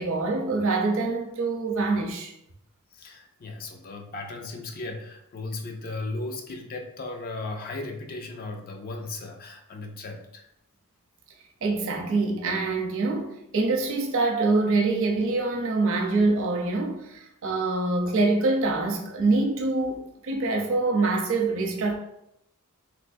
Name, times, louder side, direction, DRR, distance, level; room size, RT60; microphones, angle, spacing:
voice 1, 0.0-2.3 11.6-22.0, right 3 dB, 60° right, 0.6 m, -25 dB
voice 2, 2.9-10.5, left 2 dB, 40° left, 0.4 m, -36 dB
3.3 x 2.9 x 2.5 m
head